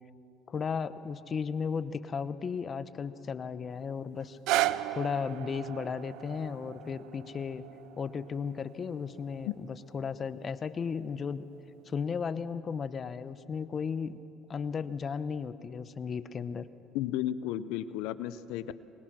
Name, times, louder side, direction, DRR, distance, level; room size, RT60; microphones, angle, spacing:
voice 1, 0.5-4.4 4.9-7.7 8.0-11.4 11.9-14.2 14.5-16.7, left 6 dB, 35° left, 13 dB, 0.8 m, -35 dB
sound 1, 4.2-10.3 11.0-11.1, right 14 dB, 75° right, 0.6 m, -36 dB
voice 2, 16.9-18.8, left 12 dB, 80° left, 15 dB, 0.6 m, -33 dB
23.5 x 20.5 x 6.1 m, 2.8 s
supercardioid pair, 95°, 0 cm